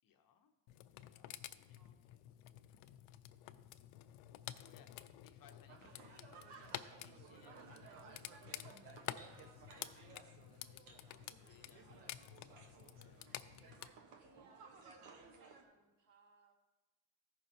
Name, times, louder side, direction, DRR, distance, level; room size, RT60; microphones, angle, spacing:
voice 1, 0.0-0.5 1.1-1.8 4.4-8.2 8.6-13.5, left 7 dB, 45° left, 6 dB, 0.6 m, -69 dB
sound 1, 0.7-13.9, left 13 dB, 90° left, 0.6 m, -51 dB
voice 2, 1.7-2.2 14.2-16.5, right 2 dB, 60° right, 2 dB, 1.5 m, -68 dB
sound 2, 5.7-15.6, right 5 dB, 85° right, 1.1 m, -58 dB
sound 3, 9.5-15.3, right 1 dB, 20° right, 1.6 m, -77 dB
15.0 x 5.6 x 2.6 m, 1.1 s
cardioid pair, 150°, 50 cm